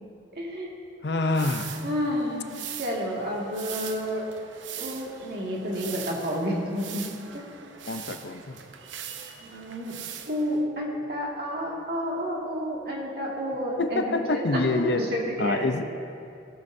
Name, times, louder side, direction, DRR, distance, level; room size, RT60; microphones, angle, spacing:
voice 1, 0.4-0.7 1.8-2.5 2.8-4.3 4.8-7.0 7.3-7.4 9.4-9.9 10.3-14.6 15.0-15.7, equal, 55° right, -2 dB, 2.1 m, -30 dB
voice 2, 1.0-1.8 7.9-8.6 13.8-15.0 15.4-15.8, left 2 dB, 65° left, 7 dB, 0.7 m, -26 dB
sound 1, 1.3-10.6, right 8 dB, 90° right, 0.8 m, -41 dB
17.5 x 12.0 x 2.7 m, 2.6 s
head